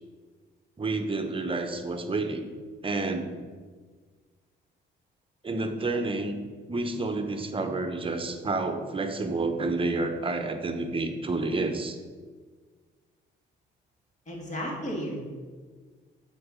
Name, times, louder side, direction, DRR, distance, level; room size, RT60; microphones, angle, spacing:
voice 1, 0.8-2.5 2.8-3.3 5.4-6.4 6.7-12.0, right 3 dB, 25° right, 6 dB, 0.9 m, -29 dB
voice 2, 14.3-15.2, equal, 35° left, -2 dB, 2.3 m, -33 dB
7.8 x 4.7 x 5.1 m, 1.5 s
cardioid pair, 90°, 20 cm